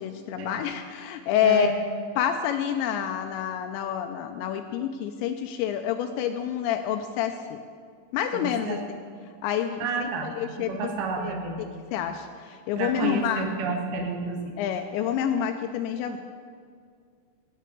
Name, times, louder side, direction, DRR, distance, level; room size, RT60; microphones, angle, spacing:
voice 1, 0.0-1.7 2.2-7.6 8.1-9.0 9.4-10.9 11.2-13.5 14.6-16.2, left 9 dB, 85° left, 7 dB, 2.7 m, -28 dB
voice 2, 1.4-1.7 8.3-8.8 9.8-11.6 12.1-12.2 12.8-14.5, right 4 dB, 70° right, 2 dB, 2.9 m, -30 dB
16.0 x 6.4 x 6.6 m, 2.1 s
omnidirectional pair, 5.3 m